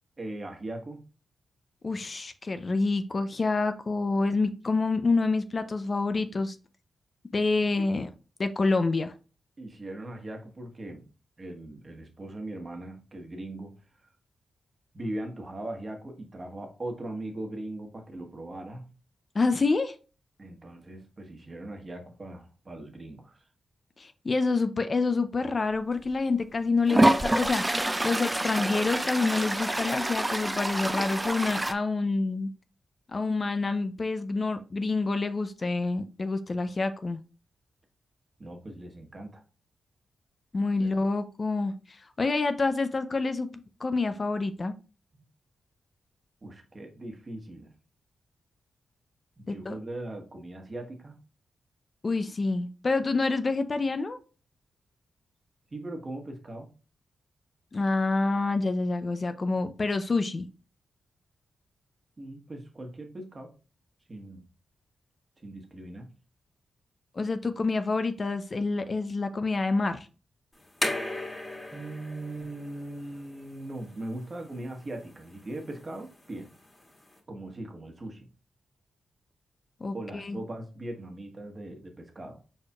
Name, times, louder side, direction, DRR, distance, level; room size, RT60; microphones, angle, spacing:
voice 1, 0.2-1.0 7.8-7.9 9.6-11.0 11.4-13.7 14.9-18.8 20.4-23.4 38.4-39.4 40.8-40.9 45.1-45.2 46.4-47.7 49.4-51.2 55.7-56.7 62.2-63.5 64.1-64.4 65.4-66.1 71.7-76.5 77.3-78.3 79.9-82.4, right 1 dB, 40° right, 1.2 m, -39 dB
voice 2, 1.8-6.6 7.3-8.1 8.4-9.1 19.3-20.0 24.0-32.5 33.1-37.2 40.5-44.7 49.5-49.8 52.0-54.2 57.7-60.5 67.1-70.1 79.8-80.4, left 3 dB, 45° left, 0.5 m, -27 dB
Toilet flush, 25.9-26.0 26.9-31.7, right 1 dB, 15° right, 0.4 m, -27 dB
sound 1, 70.5-77.2, left 1 dB, 25° left, 2.0 m, -38 dB
4.6 x 4.3 x 2.3 m
supercardioid pair, 45°, 0 cm